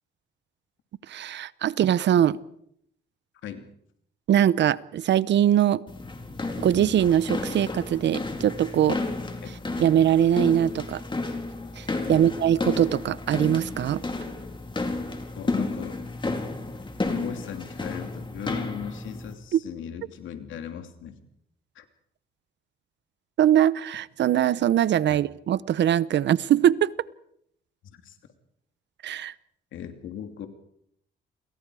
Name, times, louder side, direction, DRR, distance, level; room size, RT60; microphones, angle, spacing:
voice 1, 1.1-2.4 4.3-5.8 6.6-9.0 9.8-11.0 11.8-14.0 19.5-19.6 23.4-26.9 29.0-29.3, right 10 dB, 65° right, 0.8 m, -22 dB
sound 1, 5.9-19.3, left 2 dB, 25° left, 4.3 m, -32 dB
voice 2, 15.4-16.0 17.0-21.2 21.7-21.8 25.1-25.2 27.8-28.2 29.7-30.5, left 9 dB, 75° left, 2.9 m, -38 dB
29.5 x 23.0 x 4.9 m
cardioid pair, 90°, 20 cm